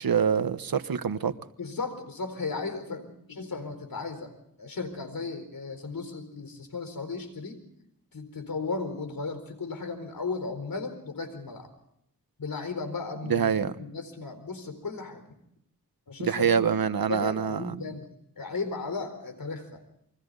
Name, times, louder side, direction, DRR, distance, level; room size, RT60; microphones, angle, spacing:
voice 1, 0.0-1.3 13.3-13.7 16.2-17.8, right 7 dB, 85° right, 11 dB, 1.2 m, -25 dB
voice 2, 1.6-4.3 4.6-7.6 8.1-11.7 12.4-13.5 13.8-15.2 16.1-16.6 17.1-18.1 18.4-19.8, left 4 dB, 75° left, 8 dB, 4.4 m, -35 dB
29.0 x 23.0 x 4.0 m, 0.75 s
wide cardioid pair, 85°, 35 cm